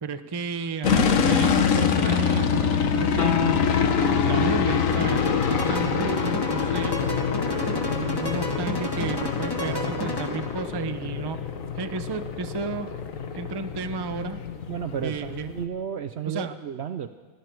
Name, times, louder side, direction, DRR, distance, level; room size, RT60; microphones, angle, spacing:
voice 1, 0.0-3.9 4.3-7.0 7.9-11.4 11.8-12.9 13.3-14.4 15.0-15.5 16.3-16.5, right 4 dB, 25° right, 9 dB, 0.5 m, -32 dB
sound 1, 0.8-15.6, left 6 dB, 65° left, 1.4 m, -25 dB
sound 2, 3.2-13.7, left 8 dB, 50° left, 0.7 m, -35 dB
sound 3, 4.9-10.6, left 1 dB, 15° left, 1.3 m, -32 dB
voice 2, 14.7-17.1, right 8 dB, 60° right, 10 dB, 0.7 m, -32 dB
22.0 x 14.5 x 4.6 m, 1.4 s
omnidirectional pair, 1.5 m